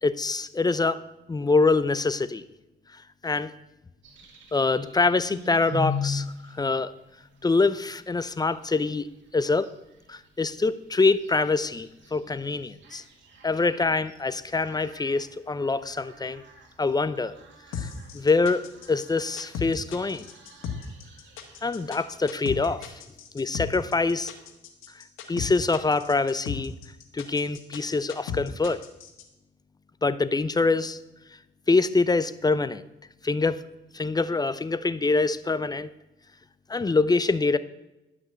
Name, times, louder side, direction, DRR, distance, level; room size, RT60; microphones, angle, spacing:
voice 1, 0.0-2.4 3.2-3.5 4.5-6.9 7.4-9.7 10.1-13.0 13.4-16.4 16.8-17.3 17.8-17.9 18.1-20.3 21.6-22.9 23.3-24.3 25.3-26.7 27.1-28.8 30.0-31.0 31.7-32.8 33.2-33.6 33.9-35.9 36.7-37.6, left 3 dB, 20° left, 15 dB, 0.6 m, -25 dB
sound 1, 4.0-22.9, left 3 dB, 70° right, 2.3 m, -41 dB
sound 2, 17.7-29.2, left 8 dB, 90° left, 1.6 m, -35 dB
11.5 x 6.0 x 8.0 m, 0.97 s
cardioid pair, 90°, 20 cm